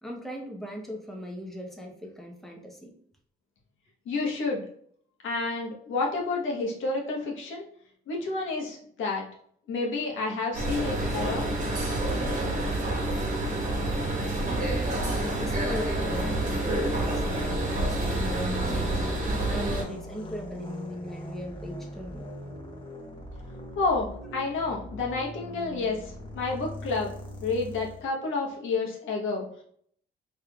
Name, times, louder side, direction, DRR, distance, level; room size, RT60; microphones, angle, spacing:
voice 1, 0.0-2.9 15.4-22.3, equal, ahead, -1 dB, 0.9 m, -39 dB
voice 2, 4.0-4.6 5.2-7.6 8.1-9.2 9.7-11.5 23.7-27.1 27.4-29.4, left 3 dB, 80° left, -2 dB, 1.3 m, -30 dB
sound 1, 10.5-19.8, right 1 dB, 40° right, 1.2 m, -28 dB
sound 2, 14.4-28.1, equal, 25° left, 1.1 m, -39 dB
4.3 x 3.4 x 2.4 m, 0.62 s
cardioid pair, 90°, 20 cm